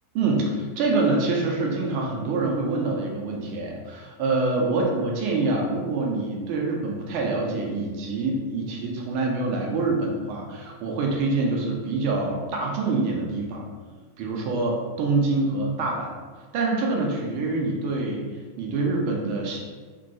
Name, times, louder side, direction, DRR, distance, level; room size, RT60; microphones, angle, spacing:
voice 1, 0.1-13.7 14.2-16.1 16.5-18.2 18.6-19.6, right 3 dB, 45° right, -1 dB, 0.5 m, -25 dB
2.9 x 2.2 x 2.6 m, 1.5 s
figure-of-eight pair, 90°, 0 cm